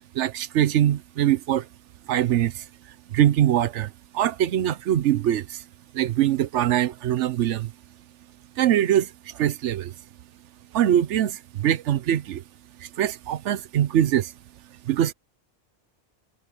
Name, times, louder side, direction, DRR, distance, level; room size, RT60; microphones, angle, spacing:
voice 1, 0.1-1.7 2.1-2.6 3.1-5.6 5.9-7.7 8.6-9.9 10.7-12.4 12.8-14.3 14.8-15.1, right 11 dB, 85° right, 1.0 m, -23 dB
omnidirectional pair, 1.2 m